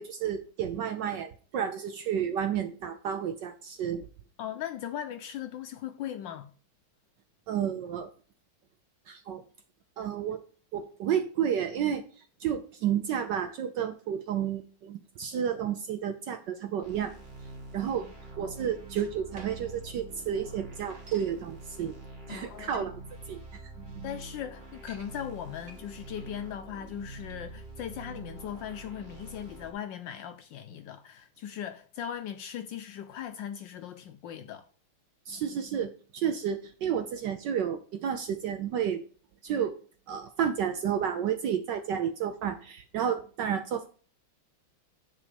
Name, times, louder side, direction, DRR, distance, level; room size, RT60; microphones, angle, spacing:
voice 1, 0.0-4.1 7.5-8.1 9.1-9.4 10.0-10.4 10.7-12.0 12.4-17.1 17.7-18.1 18.4-21.9 22.3-23.0 23.3-24.1 35.3-39.0 39.4-39.7 40.1-43.9, right 8 dB, 70° right, 1.0 m, -31 dB
voice 2, 4.4-6.5 18.0-18.1 18.4-18.5 22.3-22.9 24.0-34.6, left 10 dB, 75° left, 1.1 m, -39 dB
sound 1, 16.8-29.7, right 2 dB, 25° right, 1.5 m, -46 dB
sound 2, 18.9-19.8 20.2-20.3 20.5-21.4 22.1-22.2 22.6-23.2 23.7-23.8 24.0-24.1 24.5-25.1 25.6-28.5, right 2 dB, 45° right, 1.9 m, -52 dB
10.0 x 4.1 x 5.0 m
omnidirectional pair, 2.4 m